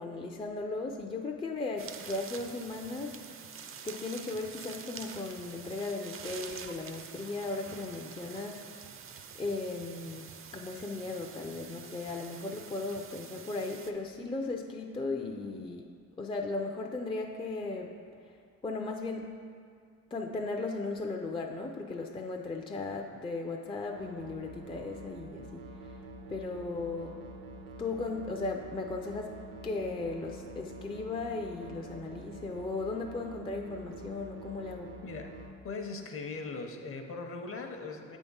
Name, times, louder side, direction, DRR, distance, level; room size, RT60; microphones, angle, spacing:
voice 1, 0.0-3.2 3.8-8.6 9.4-17.9 18.6-19.3 20.1-25.7 26.3-27.2 27.8-29.3 29.6-34.9, left 3 dB, 20° left, 2 dB, 0.4 m, -36 dB
sound 1, 1.8-13.9, right 6 dB, 45° right, 0.5 m, -47 dB
sound 2, 24.0-35.5, right 1 dB, 85° right, 0.7 m, -47 dB
voice 2, 35.0-35.3 35.6-38.2, left 3 dB, 45° left, 4 dB, 0.7 m, -39 dB
7.5 x 3.6 x 5.4 m, 2.2 s
cardioid pair, 105°, 31 cm